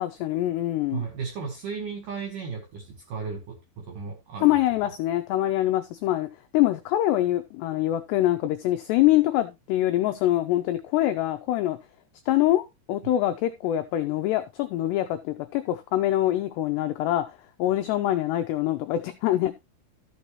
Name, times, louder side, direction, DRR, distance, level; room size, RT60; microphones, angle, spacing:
voice 1, 0.0-1.1 4.4-6.3 6.5-11.8 12.3-17.2 17.6-19.5, left 14 dB, 90° left, 2.4 m, -24 dB
voice 2, 0.9-4.6, right 5 dB, 70° right, 2.0 m, -35 dB
13.0 x 6.9 x 3.1 m
omnidirectional pair, 5.6 m